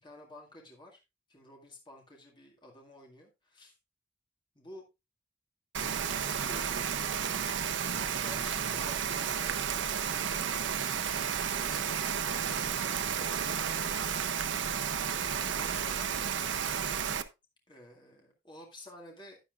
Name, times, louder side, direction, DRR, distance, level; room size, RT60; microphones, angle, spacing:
voice 1, 0.0-1.0 1.3-3.8 4.6-4.9 6.3-7.5 8.1-10.6 11.1-13.9 15.4-16.2 17.7-19.4, left 1 dB, 25° left, -1 dB, 2.0 m, -52 dB
Rain, 5.7-17.2, right 7 dB, 75° right, 0.7 m, -32 dB
10.5 x 10.0 x 2.4 m, 0.24 s
head